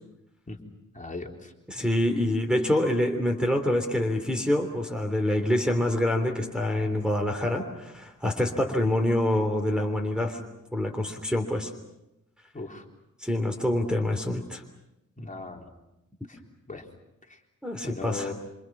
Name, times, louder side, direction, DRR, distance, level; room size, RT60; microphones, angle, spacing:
voice 1, 0.9-1.5 12.5-12.8 15.2-15.7 16.3-16.4 16.7-16.8 17.3-17.4 17.8-18.3, left 3 dB, 25° left, 1 dB, 3.8 m, -37 dB
voice 2, 1.7-10.4 10.7-11.7 13.2-14.6 17.6-18.3, left 1 dB, 5° right, 1 dB, 3.2 m, -26 dB
27.0 x 27.0 x 6.1 m, 0.91 s
cardioid pair, 95°, 33 cm